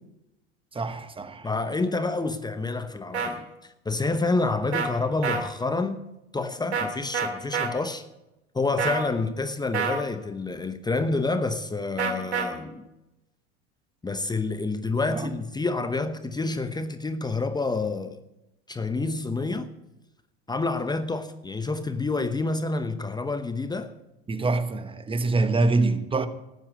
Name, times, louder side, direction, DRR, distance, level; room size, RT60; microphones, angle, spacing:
voice 1, 0.7-1.5 15.1-15.3 24.3-26.3, right 3 dB, 15° right, 1.3 m, -25 dB
voice 2, 1.4-6.0 6.3-8.0 8.5-12.9 14.0-18.2 18.7-19.7 20.5-23.9, left 3 dB, 15° left, 0.9 m, -28 dB
sound 1, 3.1-3.3 4.7-4.9 5.2-5.4 6.7-6.9 7.1-7.7 8.8-9.1 9.7-10.0 12.0-12.5, right 6 dB, 90° right, 2.2 m, -26 dB
13.0 x 9.3 x 8.0 m
hypercardioid pair, 90°, 32 cm